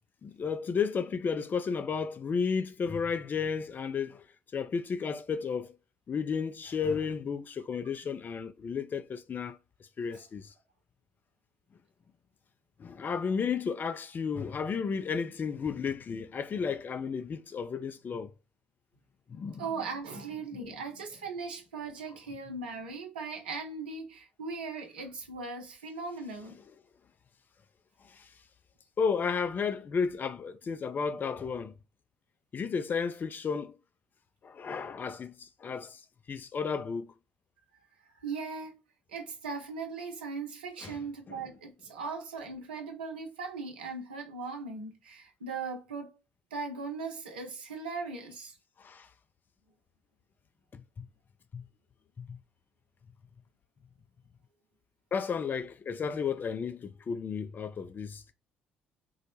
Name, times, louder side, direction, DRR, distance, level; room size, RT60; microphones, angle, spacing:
voice 1, 0.2-4.2 4.5-5.8 6.1-9.6 10.0-10.5 12.8-18.3 19.3-19.8 20.5-20.8 28.1-28.3 29.0-31.7 32.5-33.8 34.4-36.0 36.3-37.1 40.8-41.4 48.8-49.1 50.7-51.1 51.5-51.7 52.2-52.4 55.1-58.3, left 6 dB, 40° left, 0.5 m, -33 dB
voice 2, 19.6-26.6 38.2-38.8 39.1-46.1 46.5-48.5, right 4 dB, 80° right, 0.7 m, -39 dB
3.9 x 2.1 x 2.9 m
figure-of-eight pair, 50°, 5 cm